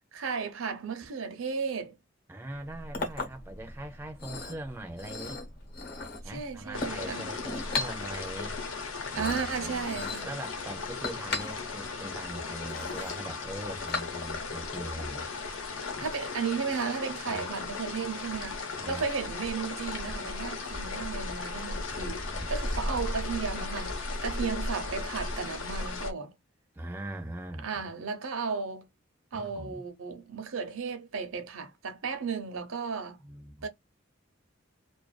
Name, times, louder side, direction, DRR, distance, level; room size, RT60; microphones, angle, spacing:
voice 1, 0.1-2.0 6.2-7.3 9.1-10.3 16.0-26.3 27.6-28.9 29.3-33.2 33.6-33.7, right 5 dB, 85° right, 0.6 m, -34 dB
voice 2, 2.3-5.4 6.2-8.6 9.1-15.3 16.0-16.1 17.3-17.5 18.7-19.0 21.9-22.5 26.7-27.9 29.3-29.8 33.2-33.7, right 1 dB, 10° right, 0.4 m, -41 dB
Chink clink, 2.5-14.5, left 3 dB, 50° left, 0.9 m, -38 dB
sound 1, 6.7-26.1, left 3 dB, 75° left, 0.7 m, -36 dB
2.4 x 2.2 x 2.3 m
head